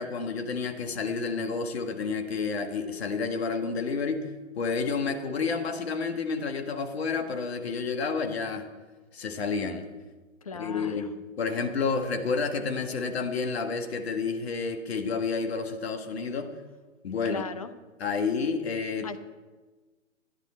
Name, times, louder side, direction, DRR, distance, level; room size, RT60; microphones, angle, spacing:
voice 1, 0.0-8.7 9.1-9.9 10.5-16.5 17.0-17.4 18.0-19.2, left 4 dB, 50° left, 6 dB, 1.3 m, -30 dB
voice 2, 10.4-11.1 17.0-17.7 19.0-19.2, left 5 dB, 30° left, 10 dB, 0.4 m, -37 dB
11.5 x 11.0 x 4.2 m, 1.3 s
figure-of-eight pair, 135°, 40 cm